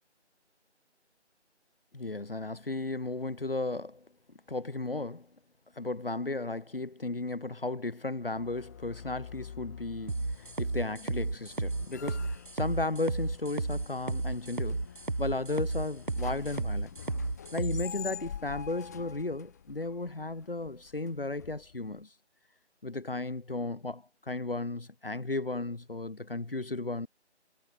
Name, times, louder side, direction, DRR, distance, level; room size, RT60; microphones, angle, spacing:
voice 1, 1.9-4.1 4.5-5.3 5.8-14.8 15.2-16.9 17.5-22.1 22.8-27.1, left 2 dB, 50° left, 2.3 m, -35 dB
sound 1, 8.3-22.0, left 8 dB, 15° left, 5.5 m, -47 dB
sound 2, 10.1-17.9, right 3 dB, 45° right, 3.2 m, -33 dB
figure-of-eight pair, 165°, 35 cm